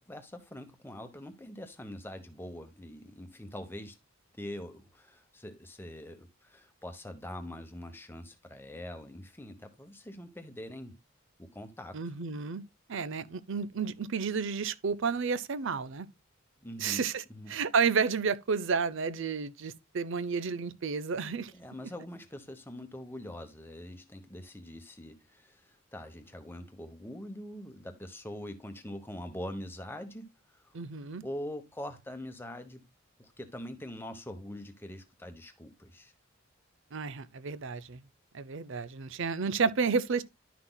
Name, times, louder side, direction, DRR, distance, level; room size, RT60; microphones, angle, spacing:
voice 1, 0.0-4.0 4.4-11.0 11.4-12.0 16.6-17.0 17.3-17.6 21.5-30.7 31.2-32.8 33.2-36.1, left 1 dB, 10° left, 0.9 m, -43 dB
voice 2, 11.9-12.6 12.9-16.1 16.8-17.2 17.5-21.5 30.7-31.2 36.9-38.0 38.3-40.2, right 5 dB, 60° right, 0.6 m, -31 dB
11.5 x 5.9 x 2.2 m
head